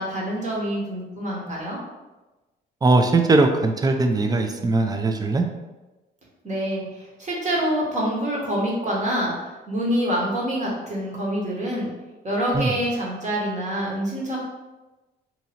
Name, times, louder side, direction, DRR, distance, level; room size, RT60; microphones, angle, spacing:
voice 1, 0.0-1.8 6.4-11.9 12.2-14.4, equal, 35° right, -4 dB, 1.3 m, -26 dB
voice 2, 2.8-5.4 12.5-12.7, right 3 dB, 20° right, 5 dB, 0.4 m, -20 dB
2.8 x 2.6 x 4.2 m, 1.1 s
cardioid pair, 90°, 20 cm